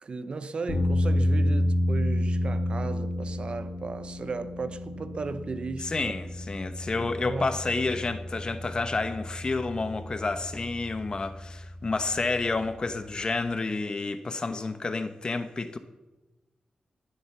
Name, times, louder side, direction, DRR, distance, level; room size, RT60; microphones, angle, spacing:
voice 1, 0.0-6.1 7.0-7.5 7.8-7.9, right 4 dB, 45° right, 0.8 m, -35 dB
sound 1, 0.7-13.2, left 1 dB, 80° left, 3.0 m, -30 dB
voice 2, 5.8-15.8, left 3 dB, 40° left, 1.1 m, -30 dB
20.0 x 8.2 x 7.0 m
wide cardioid pair, 105°, 2 cm